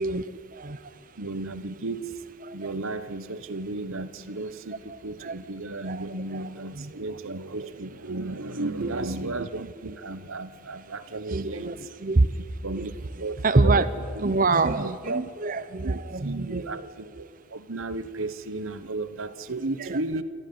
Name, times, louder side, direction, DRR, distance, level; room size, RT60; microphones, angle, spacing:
voice 1, 0.0-1.0 2.4-2.7 4.9-5.4 5.8-6.4 6.7-6.9 8.8-9.2 11.3-12.9 13.4-13.9 14.2-16.7 19.8-20.0, right 3 dB, 45° right, 12 dB, 0.7 m, -26 dB
voice 2, 1.2-2.1 2.5-11.7 12.6-12.9 13.2-13.9 14.1-14.3 14.8-15.2 15.8-20.2, right 2 dB, 90° right, 12 dB, 1.2 m, -34 dB
28.5 x 13.5 x 9.5 m, 2.2 s
head